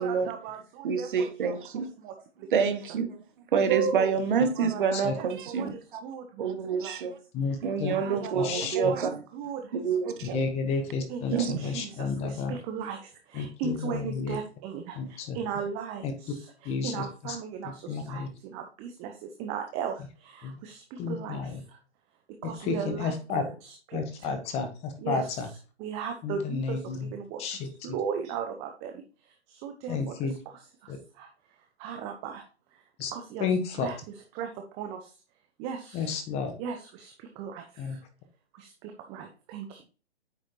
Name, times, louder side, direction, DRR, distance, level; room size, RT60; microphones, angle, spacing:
voice 1, 0.0-1.6 2.0-2.5 3.7-4.1 4.6-6.5 6.8-7.0 7.9-9.7 10.1-10.4 11.1-21.8 22.4-23.1 23.6-24.3 25.0-25.4 25.8-30.2 30.8-31.3 31.8-32.5 33.1-33.5 33.8-34.0 34.3-35.1 35.6-36.2 36.6-38.0 38.5-39.8, right 7 dB, 20° right, 0.8 m, -37 dB
voice 2, 0.8-1.9 2.5-3.2 3.5-6.0 6.4-7.2 7.6-9.2 9.7-10.4 11.3-11.6, right 6 dB, 50° right, 1.2 m, -27 dB
voice 3, 7.3-7.9 8.3-8.9 10.2-12.5 13.3-14.4 14.9-15.4 16.0-16.1 16.6-17.4 17.9-18.3 20.4-20.6 21.0-21.6 22.6-23.4 23.9-25.5 26.2-27.1 27.4-28.0 29.9-30.3 30.9-31.0 33.0-33.1 33.4-33.9 35.9-36.5 37.8-38.0, left 5 dB, 20° left, 1.1 m, -31 dB
8.5 x 6.2 x 2.9 m
figure-of-eight pair, 130°, 34 cm